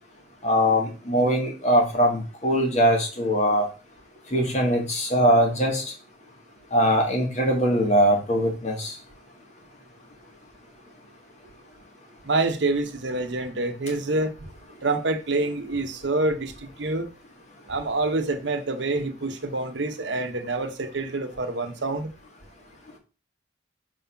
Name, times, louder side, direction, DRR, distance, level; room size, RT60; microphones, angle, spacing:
voice 1, 0.4-3.7 4.3-5.8 6.7-8.9, equal, 40° left, 1.8 m, -21 dB
voice 2, 12.2-14.3 14.8-17.1 17.7-22.1, right 2 dB, 75° right, 0.9 m, -27 dB
4.8 x 3.9 x 5.7 m
head